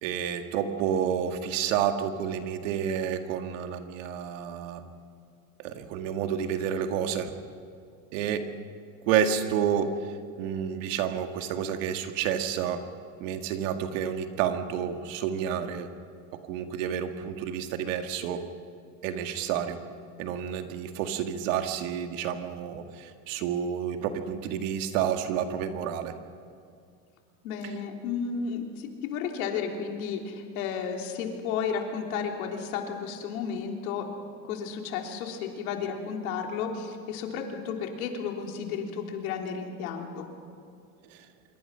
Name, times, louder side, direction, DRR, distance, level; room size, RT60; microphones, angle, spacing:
voice 1, 0.0-4.8 5.6-7.3 8.1-8.5 9.1-10.0 10.4-12.8 13.2-15.9 16.5-18.4 19.0-19.8 20.2-26.1 27.6-27.7 41.1-41.3, right 8 dB, 60° right, 6 dB, 1.9 m, -30 dB
voice 2, 27.4-34.1 34.4-40.3, left 6 dB, 80° left, 2 dB, 3.6 m, -33 dB
26.0 x 23.5 x 5.6 m, 2.3 s
supercardioid pair, 170°, 42 cm